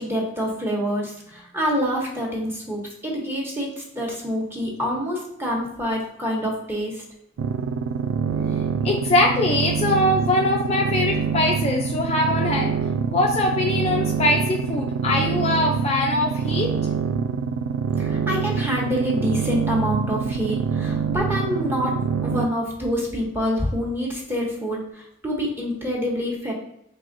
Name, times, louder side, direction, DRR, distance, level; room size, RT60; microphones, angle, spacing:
voice 1, 0.0-7.0 18.0-22.0 22.2-26.5, equal, 10° right, -3 dB, 1.0 m, -26 dB
sound 1, 7.4-22.5, right 6 dB, 70° right, 0.3 m, -25 dB
voice 2, 8.8-12.8 13.1-16.7, left 2 dB, 30° left, 0 dB, 0.4 m, -22 dB
4.0 x 3.3 x 2.6 m, 0.79 s
head